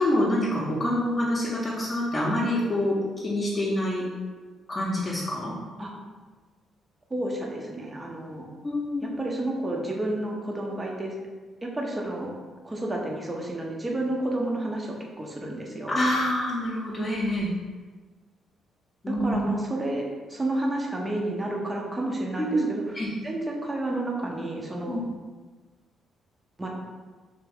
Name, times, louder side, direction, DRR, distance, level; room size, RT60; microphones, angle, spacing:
voice 1, 0.0-4.1 4.7-5.5 8.6-9.2 15.9-17.5 19.0-19.4 22.4-23.1 24.9-25.0, left 1 dB, 30° left, -7 dB, 0.7 m, -26 dB
voice 2, 7.1-8.5 9.0-11.1 11.6-12.3 12.6-16.0 19.1-23.0 23.2-25.0 26.6-26.7, right 1 dB, 20° right, -1 dB, 0.7 m, -30 dB
3.4 x 3.0 x 3.5 m, 1.4 s
cardioid pair, 90°, 0 cm